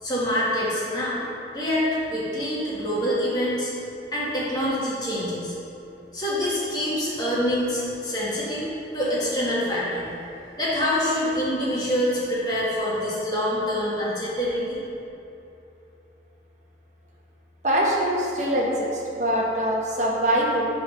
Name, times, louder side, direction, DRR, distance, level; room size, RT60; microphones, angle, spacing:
voice 1, 0.0-1.2 1.5-3.7 4.1-5.5 6.1-10.1 10.6-14.8, equal, 25° left, -8 dB, 1.7 m, -26 dB
voice 2, 17.6-20.7, equal, 40° right, -3 dB, 1.2 m, -23 dB
7.8 x 3.9 x 5.7 m, 2.9 s
head